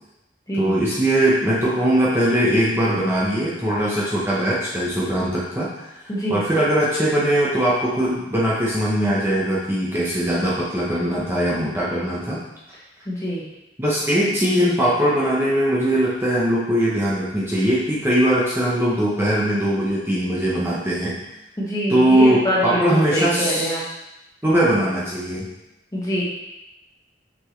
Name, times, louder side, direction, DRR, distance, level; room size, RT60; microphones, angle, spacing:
voice 1, 0.6-5.7 6.0-12.4 13.8-21.2 21.9-23.8 24.4-25.5, right 1 dB, 15° right, -7 dB, 0.9 m, -20 dB
voice 2, 13.1-13.4 21.6-23.8 25.9-26.2, equal, 20° left, -6 dB, 1.5 m, -24 dB
6.1 x 5.9 x 3.2 m, 0.95 s
head